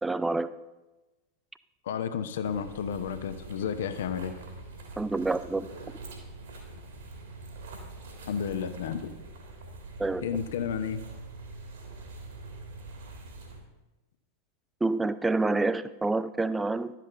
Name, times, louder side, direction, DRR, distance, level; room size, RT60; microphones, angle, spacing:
voice 1, 0.0-0.5 5.0-5.7 10.0-10.3 14.8-16.9, right 3 dB, 10° right, 14 dB, 0.4 m, -27 dB
voice 2, 1.8-4.4 8.3-9.1 10.2-11.0, left 7 dB, 60° left, 11 dB, 0.7 m, -32 dB
sound 1, 2.4-13.6, right 2 dB, 60° right, 2.0 m, -44 dB
11.5 x 7.6 x 3.8 m, 1.1 s
figure-of-eight pair, 90°, 0 cm